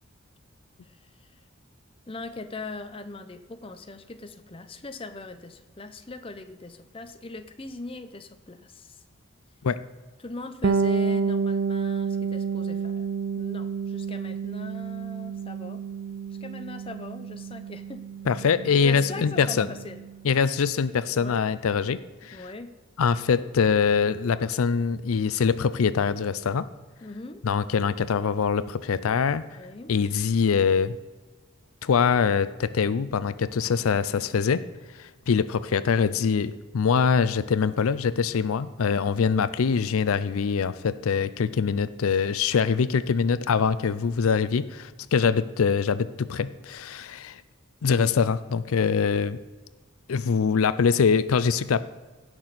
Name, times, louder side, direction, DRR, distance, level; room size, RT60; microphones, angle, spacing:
voice 1, 0.8-1.4 2.1-9.0 10.2-13.1 13.4-15.8 16.4-18.0 18.8-20.1 21.1-21.4 22.3-22.7 27.0-27.4 29.5-29.9, left 2 dB, 25° left, 8 dB, 0.6 m, -40 dB
Bass guitar, 10.6-20.2, right 5 dB, 50° right, 0.4 m, -30 dB
voice 2, 18.3-19.7 20.2-22.4 23.0-26.7 27.4-29.4 29.9-31.0 31.8-34.6 35.0-47.4 47.8-49.4 50.1-51.8, left 6 dB, 80° left, 15 dB, 0.4 m, -24 dB
16.5 x 6.2 x 4.1 m, 1.3 s
head